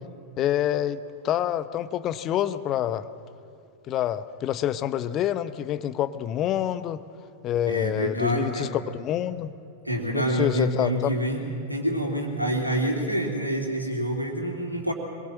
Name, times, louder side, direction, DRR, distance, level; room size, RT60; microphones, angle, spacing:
voice 1, 0.4-1.0 1.2-3.1 3.9-7.0 7.4-9.5 10.1-11.2, left 11 dB, 35° left, 13 dB, 0.9 m, -27 dB
voice 2, 7.7-8.7 9.8-11.4 11.7-14.9, right 1 dB, 90° right, 1 dB, 3.1 m, -27 dB
23.5 x 22.0 x 7.5 m, 2.5 s
figure-of-eight pair, 90°, 0 cm